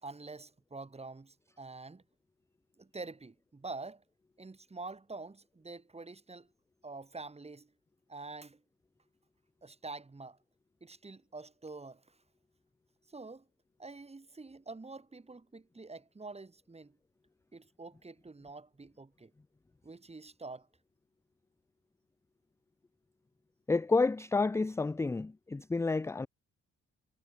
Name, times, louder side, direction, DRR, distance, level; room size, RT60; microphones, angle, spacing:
voice 1, 0.0-2.0 2.8-4.0 4.4-6.5 6.8-7.7 8.1-8.6 9.6-10.4 10.8-12.2 13.1-13.4 13.8-17.0 17.5-19.3 19.8-20.7, right 3 dB, 20° right, 1.9 m, -46 dB
voice 2, 23.7-26.3, left 3 dB, 10° left, 0.3 m, -30 dB
cardioid pair, 80°, 29 cm